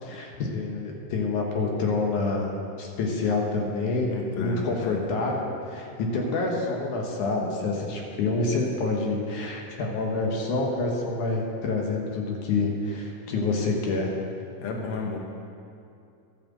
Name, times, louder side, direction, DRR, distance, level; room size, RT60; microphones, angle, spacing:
voice 1, 0.0-2.5 2.8-14.2, left 3 dB, 85° left, 0 dB, 2.9 m, -27 dB
voice 2, 4.1-5.0 14.6-15.2, left 4 dB, 70° left, 1 dB, 2.3 m, -33 dB
12.5 x 7.7 x 7.6 m, 2.6 s
omnidirectional pair, 3.4 m